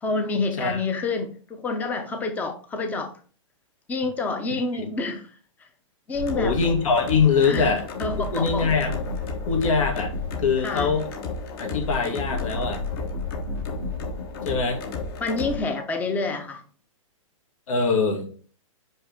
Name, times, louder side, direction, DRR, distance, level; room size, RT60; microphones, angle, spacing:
voice 1, 0.0-3.2 3.9-5.3 6.1-6.6 7.4-7.7 8.0-8.7 10.6-10.9 15.2-16.6, left 3 dB, 10° left, 0.6 m, -28 dB
sound 1, 6.1-15.6, left 3 dB, 45° left, 1.3 m, -31 dB
voice 2, 6.3-7.9 8.3-9.0 9.5-10.1 10.4-11.0 11.6-12.8 14.4-14.8 17.7-18.3, left 5 dB, 75° left, 2.3 m, -23 dB
5.5 x 5.4 x 3.6 m
hypercardioid pair, 150°, 17 cm